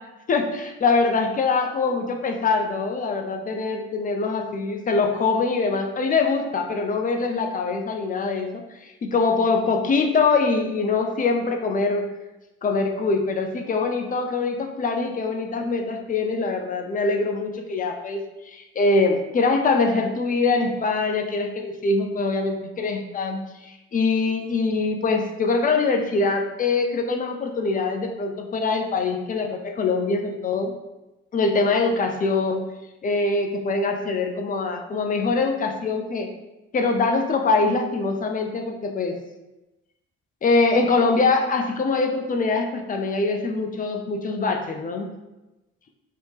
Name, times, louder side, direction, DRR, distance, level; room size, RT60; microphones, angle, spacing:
voice 1, 0.3-12.1 12.6-18.2 18.5-30.7 31.3-32.6 33.0-36.3 36.7-39.2 40.4-45.1, left 3 dB, 25° left, 3 dB, 0.4 m, -23 dB
2.6 x 2.0 x 3.3 m, 1.0 s
figure-of-eight pair, 45°, 34 cm